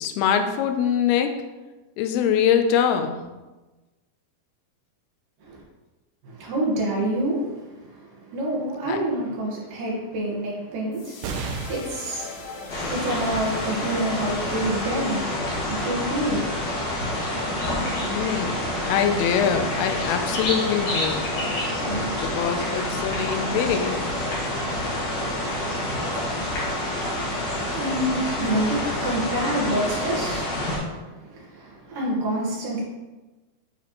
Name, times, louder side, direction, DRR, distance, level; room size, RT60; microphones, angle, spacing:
voice 1, 0.0-1.3 2.0-3.2 8.9-9.0 18.0-21.3 22.2-24.0, left 8 dB, 90° left, 7 dB, 2.6 m, -23 dB
voice 2, 6.2-16.4 27.3-32.8, right 1 dB, 65° right, -4 dB, 2.7 m, -28 dB
sound 1, 10.9-17.3, left 4 dB, 75° left, 2.6 m, -44 dB
sound 2, 11.2-18.1 18.7-18.8 19.9-20.5, right 4 dB, 85° right, 1.9 m, -40 dB
sound 3, 12.7-30.8, left 1 dB, 50° left, 2.6 m, -27 dB
9.8 x 4.2 x 3.0 m, 1.2 s
omnidirectional pair, 4.4 m